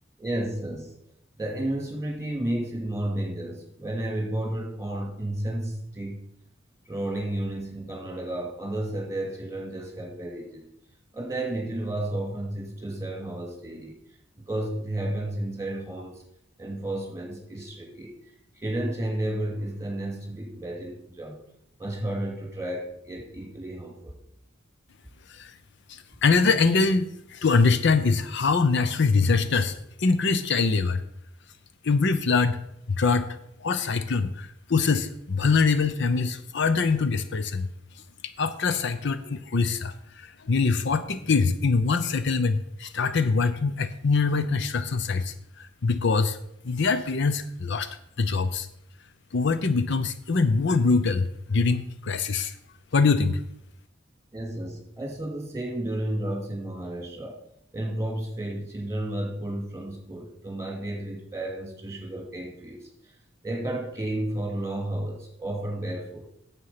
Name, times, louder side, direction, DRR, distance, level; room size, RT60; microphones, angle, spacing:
voice 1, 0.2-1.0 1.3-6.3 6.8-10.7 11.1-13.9 14.4-16.2 16.6-21.4 21.8-24.1 54.3-57.4 57.7-63.2 63.4-66.3, right 1 dB, 15° right, 0 dB, 2.5 m, -32 dB
voice 2, 25.9-31.0 31.8-32.6 32.9-33.3 33.6-37.7 38.4-46.4 46.6-47.9 48.2-48.7 49.3-52.5 52.9-53.4, left 4 dB, 60° left, 11 dB, 0.6 m, -24 dB
9.6 x 7.4 x 5.7 m, 0.75 s
head